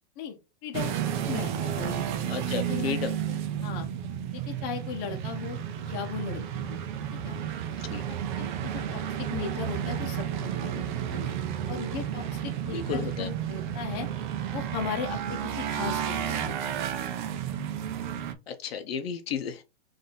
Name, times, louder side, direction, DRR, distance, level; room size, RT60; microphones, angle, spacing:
voice 1, 0.6-2.1 2.7-3.9 4.3-5.6 5.8-6.8 7.1-7.4 8.4-14.1 14.5-16.8, left 6 dB, 30° left, 0.9 m, -37 dB
sound 1, 0.7-18.3, right 9 dB, 45° right, 0.7 m, -32 dB
voice 2, 2.3-3.1 7.7-8.0 12.7-13.3 18.5-19.6, left 7 dB, 65° left, 0.7 m, -33 dB
3.8 x 2.7 x 3.8 m
hypercardioid pair, 150°, 33 cm